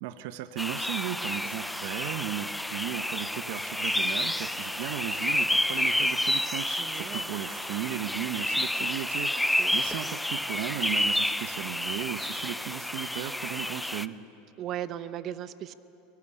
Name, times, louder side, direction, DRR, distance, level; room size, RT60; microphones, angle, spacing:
voice 1, 0.0-9.4 9.7-14.2, right 12 dB, 65° right, 10 dB, 1.0 m, -36 dB
sound 1, 0.6-14.1, left 1 dB, 5° left, 0.6 m, -30 dB
voice 2, 6.7-7.3 9.3-9.7 14.6-15.7, right 11 dB, 40° right, 13 dB, 1.0 m, -37 dB
22.0 x 21.5 x 10.0 m, 2.8 s
supercardioid pair, 130°, 0 cm